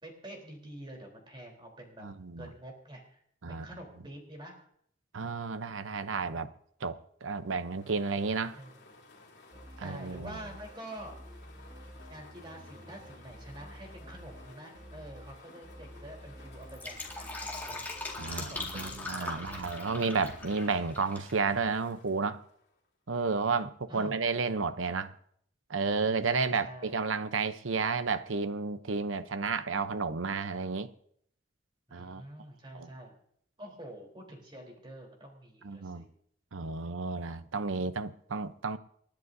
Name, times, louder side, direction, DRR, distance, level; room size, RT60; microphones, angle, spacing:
voice 1, 0.0-2.1 2.4-3.2 3.5-4.6 8.5-8.9 9.8-11.4 12.1-17.9 18.3-19.9 23.9-24.7 26.3-27.1 31.9-33.1 33.6-36.0, right 1 dB, 25° right, 3.7 m, -47 dB
voice 2, 2.0-2.5 3.4-3.6 5.1-6.5 6.8-8.6 9.8-10.3 18.2-22.4 23.1-25.1 25.7-30.9 31.9-32.2 32.8-32.9 35.6-36.1 36.5-38.8, right 4 dB, 90° right, 0.8 m, -32 dB
sound 1, 7.4-22.9, left 3 dB, 55° left, 3.2 m, -56 dB
sound 2, 9.5-20.5, equal, 40° right, 2.3 m, -51 dB
Fill (with liquid), 16.6-21.4 21.6-21.7, left 3 dB, 10° left, 2.0 m, -40 dB
28.5 x 10.5 x 2.7 m
head